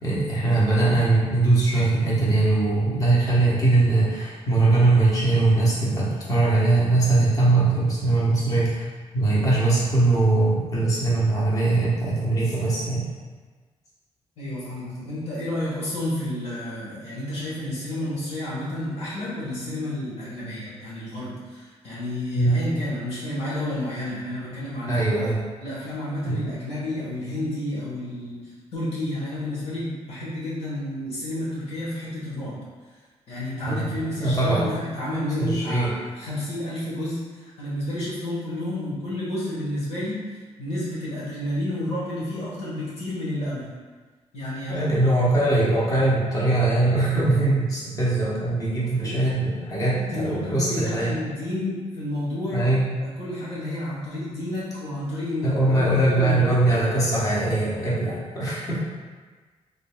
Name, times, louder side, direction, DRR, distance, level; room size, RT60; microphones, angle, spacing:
voice 1, 0.0-8.9 9.1-13.0 22.4-22.6 24.9-25.4 26.3-26.4 33.6-34.7 35.4-35.9 44.7-51.2 52.5-52.8 55.4-58.9, right 2 dB, 30° left, -7 dB, 1.0 m, -21 dB
voice 2, 14.4-25.0 25.6-32.6 33.3-40.2 40.6-43.7 44.3-44.9 49.0-49.2 49.8-52.7 53.0-56.6, left 1 dB, 65° left, -8 dB, 1.3 m, -30 dB
3.8 x 3.5 x 2.2 m, 1.4 s
wide cardioid pair, 155°, 11 cm